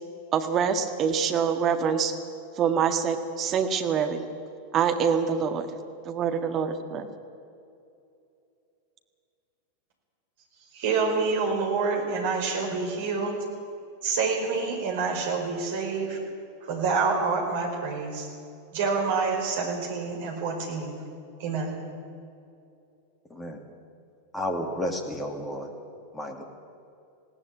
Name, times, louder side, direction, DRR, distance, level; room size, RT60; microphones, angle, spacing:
voice 1, 0.3-2.1 2.6-4.3 4.7-5.7 6.0-7.1, right 7 dB, 30° right, 6 dB, 1.8 m, -25 dB
voice 2, 10.7-13.4 14.0-16.2 16.6-18.3 18.7-21.0 21.4-21.7, right 4 dB, 50° right, 2 dB, 5.3 m, -27 dB
voice 3, 24.3-25.7 26.1-26.4, equal, 15° left, 4 dB, 2.8 m, -31 dB
20.0 x 17.0 x 8.9 m, 2.6 s
figure-of-eight pair, 90°, 0 cm